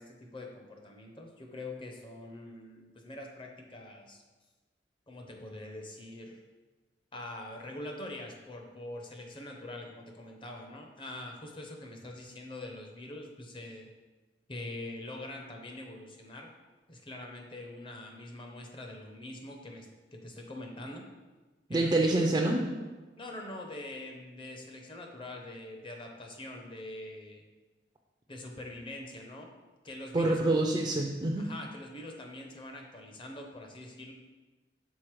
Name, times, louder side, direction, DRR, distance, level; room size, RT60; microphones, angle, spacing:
voice 1, 0.0-4.2 5.1-6.4 7.1-13.9 14.5-16.5 16.9-21.1 21.7-22.3 23.2-27.4 28.3-29.5 29.8-30.4 31.4-34.1, left 1 dB, 30° left, 2 dB, 0.8 m, -44 dB
voice 2, 21.7-22.6 30.1-31.5, right 2 dB, 25° right, 1 dB, 0.4 m, -26 dB
6.4 x 3.9 x 4.6 m, 1.3 s
head